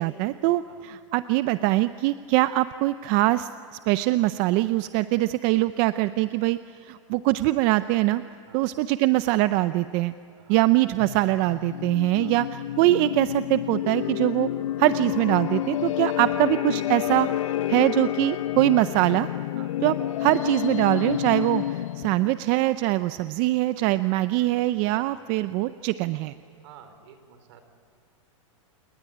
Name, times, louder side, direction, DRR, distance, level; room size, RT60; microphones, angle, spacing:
voice 1, 0.0-3.5 3.9-8.2 8.5-10.1 10.5-14.5 14.8-17.3 17.7-19.3 19.8-26.3, right 17 dB, 35° right, 13 dB, 0.5 m, -23 dB
sound 1, 11.0-22.4, left 13 dB, 75° left, 0.6 m, -29 dB
voice 2, 26.6-27.6, right 8 dB, 55° right, 9 dB, 3.7 m, -51 dB
28.5 x 19.5 x 9.9 m, 2.8 s
supercardioid pair, 155°, 17 cm